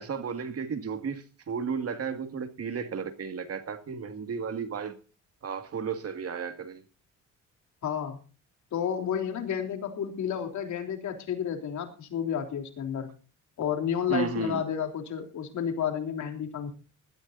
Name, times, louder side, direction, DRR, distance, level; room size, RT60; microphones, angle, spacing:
voice 1, 0.0-5.0 5.4-6.8 14.1-14.6, right 6 dB, 50° right, 2.1 m, -33 dB
voice 2, 7.8-8.2 8.7-13.1 13.6-16.7, left 8 dB, 70° left, 3.4 m, -31 dB
20.5 x 13.0 x 2.7 m
cardioid pair, 90°, 30 cm